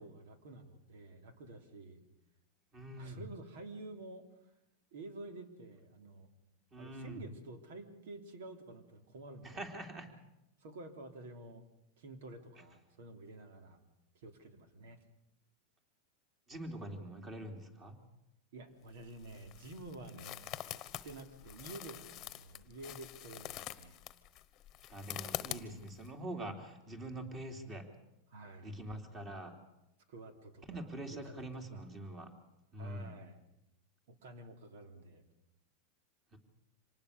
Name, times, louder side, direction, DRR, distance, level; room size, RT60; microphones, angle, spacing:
voice 1, 0.0-2.0 3.0-4.2 4.9-6.3 6.8-9.7 10.6-11.6 12.0-13.8 14.1-15.0 18.5-20.8 21.0-24.0 28.3-28.8 30.1-31.9 32.8-33.4 34.1-35.2, right 2 dB, 75° right, 7 dB, 3.2 m, -50 dB
voice 2, 2.7-3.2 6.7-7.2 9.4-10.1 16.5-17.9 24.9-27.9 28.6-29.5 30.7-32.3 32.7-33.1 36.3-36.4, right 1 dB, 20° right, 5 dB, 3.3 m, -44 dB
sound 1, 18.9-26.1, left 14 dB, 30° left, 1.1 m, -45 dB
26.0 x 19.0 x 6.8 m, 0.88 s
supercardioid pair, 155°, 0 cm